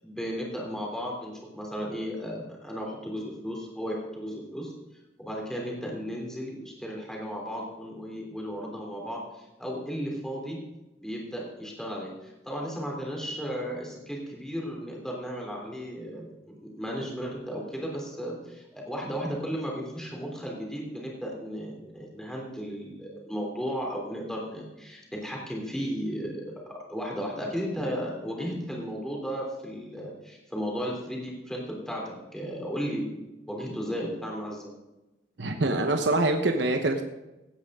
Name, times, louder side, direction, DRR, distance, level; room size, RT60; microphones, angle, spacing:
voice 1, 0.0-4.7 5.2-10.6 11.0-34.7, equal, 5° left, -2 dB, 3.2 m, -35 dB
voice 2, 35.4-37.0, right 2 dB, 70° right, 5 dB, 1.0 m, -25 dB
17.0 x 9.5 x 3.7 m, 0.99 s
head